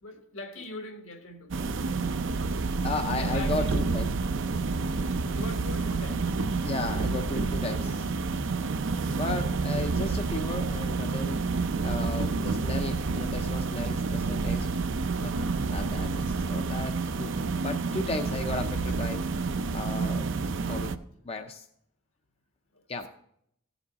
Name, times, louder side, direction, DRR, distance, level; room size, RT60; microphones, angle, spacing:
voice 1, 0.0-2.2 3.2-4.0 5.3-6.4 9.3-9.6 15.1-15.5 16.3-16.5 22.7-23.1, left 2 dB, 75° left, 4 dB, 1.6 m, -43 dB
sound 1, 1.5-21.0, right 4 dB, 65° right, 0.5 m, -29 dB
voice 2, 2.5-4.1 6.6-8.1 9.2-11.4 11.8-14.7 15.2-19.2 19.7-20.3 20.7-20.9 21.3-21.7 22.9-23.1, left 3 dB, 30° left, 6 dB, 0.5 m, -35 dB
15.0 x 7.0 x 4.0 m, 0.72 s
head